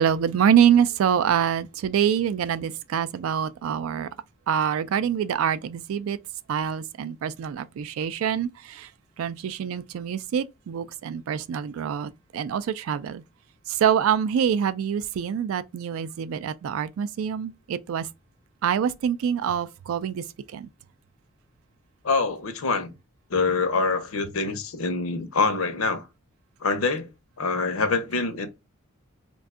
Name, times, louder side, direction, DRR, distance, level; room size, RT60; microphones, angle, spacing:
voice 1, 0.0-4.1 4.5-6.2 6.5-8.9 9.2-13.2 13.8-18.1 18.6-20.2 20.5-20.7, right 8 dB, 75° right, 0.3 m, -25 dB
voice 2, 22.0-22.9 23.3-26.1 26.6-27.1 27.4-28.5, left 4 dB, 85° left, 0.6 m, -25 dB
2.6 x 2.3 x 3.5 m
head